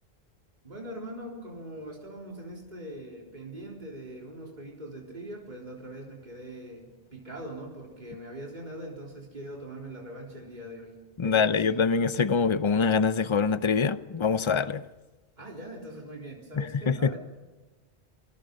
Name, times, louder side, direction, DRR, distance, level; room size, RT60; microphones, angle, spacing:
voice 1, 0.6-11.0 11.2-11.6 15.4-17.2, right 1 dB, 40° right, 4.1 m, -42 dB
voice 2, 11.2-14.8 16.6-17.1, left 5 dB, 30° left, 0.7 m, -24 dB
28.0 x 21.0 x 5.4 m
omnidirectional pair, 1.1 m